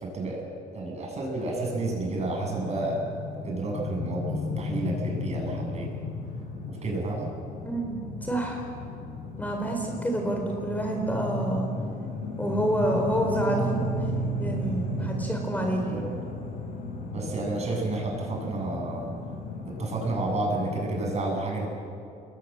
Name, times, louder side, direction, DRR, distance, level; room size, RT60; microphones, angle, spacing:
voice 1, 0.0-3.0 3.4-5.9 6.7-7.3 15.0-15.2 15.9-16.2 17.1-19.1 19.8-21.7, right 2 dB, 40° right, 0 dB, 8.0 m, -31 dB
sound 1, 1.5-21.1, left 1 dB, 65° left, 7.2 m, -34 dB
voice 2, 7.6-8.6 9.4-11.7 12.4-13.9 14.4-16.0, right 1 dB, 10° left, 1 dB, 4.2 m, -28 dB
28.0 x 21.0 x 7.7 m, 2.5 s
cardioid pair, 110°, 17 cm